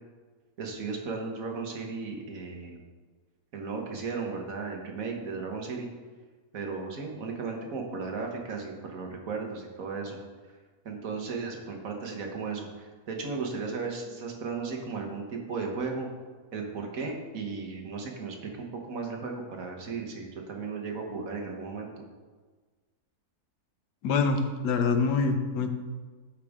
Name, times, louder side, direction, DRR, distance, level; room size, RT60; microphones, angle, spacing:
voice 1, 0.6-2.8 3.5-5.9 6.5-10.2 10.8-16.1 16.5-21.9, right 4 dB, 60° right, 1 dB, 1.5 m, -35 dB
voice 2, 24.0-25.7, left 4 dB, 90° left, 6 dB, 1.4 m, -25 dB
11.5 x 4.9 x 3.6 m, 1.4 s
omnidirectional pair, 1.7 m